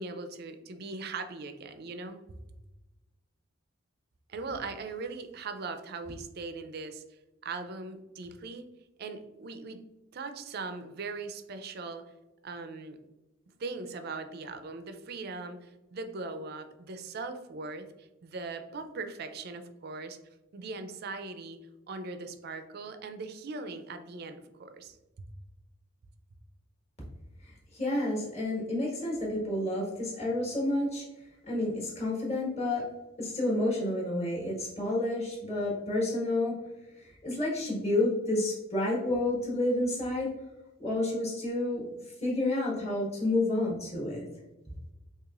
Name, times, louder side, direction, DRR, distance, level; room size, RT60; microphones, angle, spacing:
voice 1, 0.0-2.2 4.3-7.0 7.4-8.7 9.0-9.8 10.1-12.1 12.4-13.0 13.6-20.2 20.5-21.6 21.9-25.3, right 3 dB, 50° right, 9 dB, 0.4 m, -40 dB
voice 2, 27.4-31.1 31.5-32.9 33.2-36.6 37.0-40.3 40.8-41.8 42.2-44.3, left 1 dB, 30° left, -4 dB, 1.4 m, -30 dB
4.8 x 2.8 x 2.4 m, 1.0 s
head